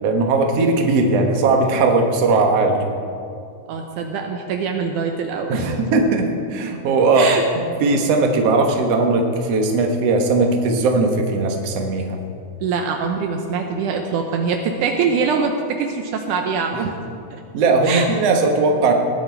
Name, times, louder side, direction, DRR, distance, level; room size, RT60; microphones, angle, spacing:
voice 1, 0.0-2.9 5.5-12.2 16.7-16.8 17.5-18.9, right 3 dB, 65° right, 3 dB, 1.6 m, -18 dB
voice 2, 3.7-5.8 7.2-7.4 12.6-16.9 17.3-17.4 17.8-18.1, right 5 dB, 90° right, 3 dB, 1.8 m, -23 dB
18.5 x 10.5 x 4.5 m, 2.4 s
omnidirectional pair, 4.7 m